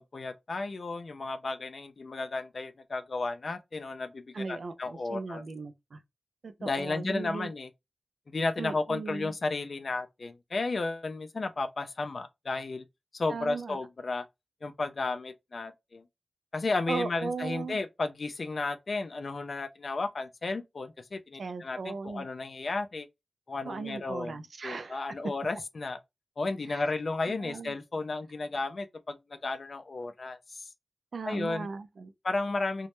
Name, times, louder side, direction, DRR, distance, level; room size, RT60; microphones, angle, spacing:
voice 1, 0.0-5.4 6.6-7.7 8.3-12.8 13.1-14.3 14.6-16.0 16.5-23.1 23.5-24.3 24.6-26.0 26.4-30.4 31.2-31.7 32.2-32.9, left 3 dB, 65° left, 0.4 m, -33 dB
voice 2, 4.3-6.0 6.4-7.5 8.6-9.3 13.3-13.8 16.9-17.8 21.4-22.3 23.6-25.0 26.7-26.8 27.3-27.7 31.1-32.1, right 4 dB, 80° right, 0.3 m, -37 dB
2.1 x 2.0 x 2.9 m
wide cardioid pair, 60°, 0 cm